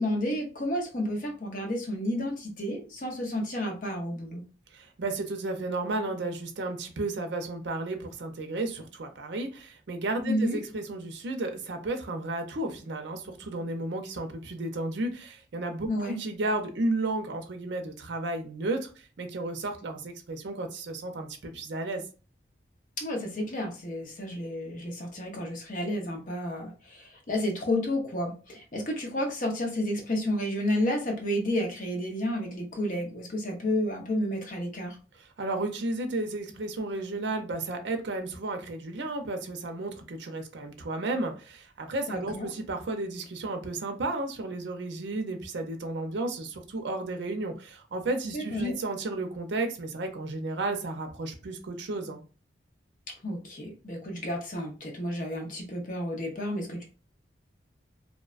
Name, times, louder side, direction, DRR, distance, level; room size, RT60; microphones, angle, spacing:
voice 1, 0.0-4.4 10.2-10.6 15.9-16.2 23.0-35.0 42.1-42.5 48.3-48.7 53.2-56.8, left 1 dB, 45° left, 1 dB, 0.7 m, -31 dB
voice 2, 4.7-22.1 35.4-52.2, right 2 dB, 70° right, 5 dB, 0.5 m, -33 dB
2.6 x 2.1 x 2.4 m, 0.36 s
head